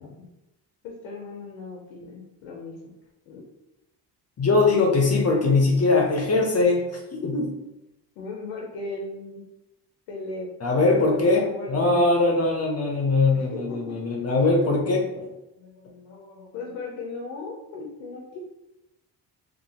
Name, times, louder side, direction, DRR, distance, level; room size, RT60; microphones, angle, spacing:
voice 1, 0.8-2.8 3.3-3.5 8.2-9.4 10.1-12.3 13.3-14.1 15.6-18.4, left 3 dB, 85° left, 0 dB, 0.7 m, -37 dB
voice 2, 4.4-7.5 10.6-15.3, left 3 dB, 35° left, 0 dB, 0.6 m, -21 dB
2.7 x 2.5 x 2.8 m, 0.92 s
supercardioid pair, 60°, 45 cm